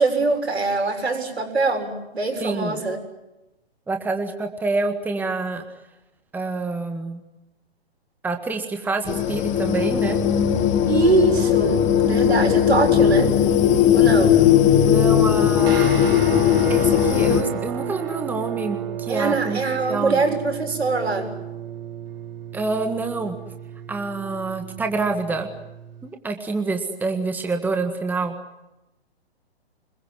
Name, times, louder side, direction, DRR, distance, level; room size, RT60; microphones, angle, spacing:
voice 1, 0.0-3.0 10.9-13.3 13.9-14.4 19.1-21.3, right 3 dB, 80° right, 4 dB, 6.9 m, -23 dB
voice 2, 2.4-2.8 3.9-5.6 6.3-7.2 8.2-10.2 14.8-15.9 16.7-19.6 19.9-20.2 22.5-23.3 23.9-25.5 26.0-28.4, right 3 dB, 5° right, 5 dB, 1.7 m, -27 dB
sound 1, 9.1-17.4, left 9 dB, 25° left, 2.0 m, -18 dB
sound 2, 15.6-26.1, right 9 dB, 60° right, 3.5 m, -33 dB
26.5 x 22.0 x 9.5 m, 0.96 s
hypercardioid pair, 130°, 32 cm